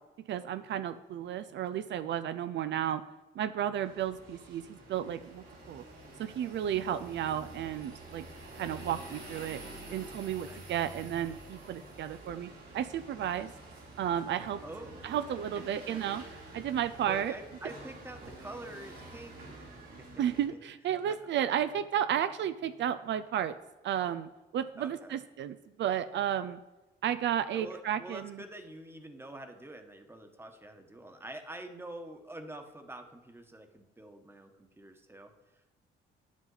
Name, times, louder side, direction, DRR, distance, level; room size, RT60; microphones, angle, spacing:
voice 1, 0.3-3.0 3.4-5.8 6.2-8.2 8.6-9.6 9.9-13.5 14.0-14.6 15.0-16.2 16.5-17.3 20.2-23.5 23.8-26.6 27.0-28.3, right 10 dB, 65° right, 12 dB, 0.5 m, -33 dB
sound 1, 3.8-20.5, right 2 dB, 90° right, 3.1 m, -48 dB
voice 2, 14.6-15.0 16.8-19.4 19.8-20.2 21.1-21.2 24.8-25.2 27.5-35.3, right 1 dB, 10° right, 6 dB, 1.2 m, -46 dB
9.1 x 8.2 x 4.0 m, 1.1 s
cardioid pair, 90°, 20 cm